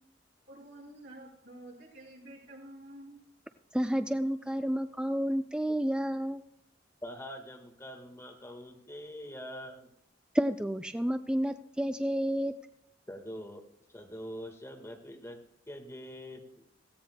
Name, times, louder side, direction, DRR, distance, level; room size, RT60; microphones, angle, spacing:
voice 1, 0.5-3.2, right 1 dB, 85° right, -4 dB, 5.1 m, -49 dB
voice 2, 3.7-6.4 10.3-12.5, equal, 5° right, 8 dB, 0.4 m, -30 dB
voice 3, 7.0-9.9 13.1-16.5, equal, 15° left, 3 dB, 1.5 m, -44 dB
17.5 x 15.5 x 2.2 m, 0.75 s
head